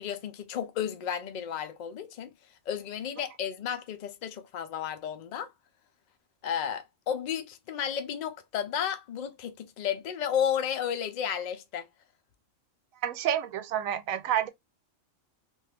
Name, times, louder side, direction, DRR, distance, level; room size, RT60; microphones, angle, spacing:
voice 1, 0.0-2.3 2.7-5.5 6.4-11.9, left 8 dB, 65° left, 0.4 m, -33 dB
voice 2, 13.0-14.5, right 10 dB, 80° right, 1.0 m, -29 dB
2.6 x 2.3 x 3.2 m
omnidirectional pair, 1.4 m